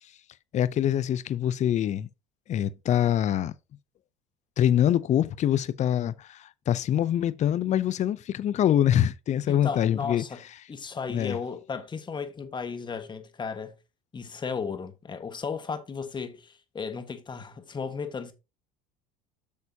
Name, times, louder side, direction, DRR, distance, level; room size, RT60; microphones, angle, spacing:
voice 1, 0.5-2.1 2.5-3.5 4.6-10.2 11.1-11.4, left 10 dB, 40° left, 0.6 m, -24 dB
voice 2, 9.5-10.4 10.7-13.7 14.1-18.3, left 5 dB, 25° left, 1.5 m, -35 dB
8.3 x 6.7 x 2.8 m
supercardioid pair, 100°, 18 cm